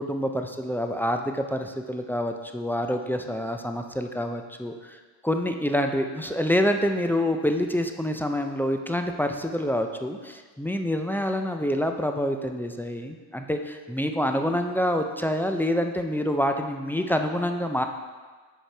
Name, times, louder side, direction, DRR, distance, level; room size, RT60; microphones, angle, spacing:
voice 1, 0.0-5.0 5.2-17.8, equal, 5° left, 5 dB, 0.3 m, -27 dB
6.4 x 4.8 x 4.4 m, 1.5 s
cardioid pair, 100°, 44 cm